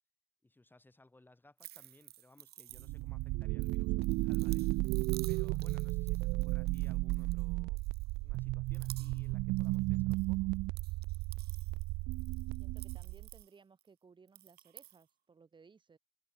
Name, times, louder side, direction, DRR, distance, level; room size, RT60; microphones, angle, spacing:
voice 1, 0.4-4.9 5.3-7.9 8.2-10.5, left 2 dB, 10° left, 5.7 m, -62 dB
sound 1, 1.6-3.2 3.6-7.4 7.8-8.4 8.7-9.3 9.6-10.2 10.5-13.9 14.3-15.0, right 14 dB, 70° right, 3.1 m, -53 dB
sound 2, 2.7-13.4, right 22 dB, 90° right, 0.4 m, -34 dB
voice 2, 12.6-16.0, right 5 dB, 30° right, 2.7 m, -61 dB
open air
cardioid pair, 110°, 17 cm